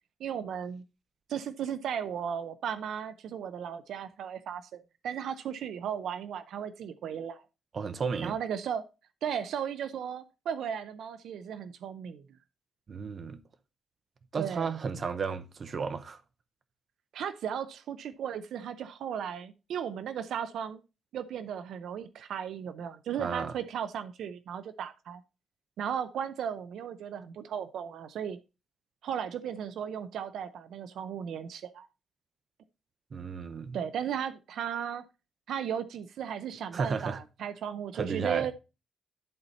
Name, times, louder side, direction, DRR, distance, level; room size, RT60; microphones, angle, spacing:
voice 1, 0.2-0.8 1.3-7.4 8.2-8.9 9.2-12.2 14.4-14.7 17.1-20.8 21.1-25.2 25.8-28.4 29.0-31.9 33.7-35.0 35.5-38.5, right 8 dB, 75° right, 0.5 m, -35 dB
voice 2, 7.7-8.4 12.9-13.4 14.3-16.2 23.2-23.5 33.1-33.8 36.7-37.2 37.9-38.5, right 5 dB, 40° right, 0.8 m, -33 dB
11.0 x 4.2 x 4.1 m
cardioid pair, 155°, 0 cm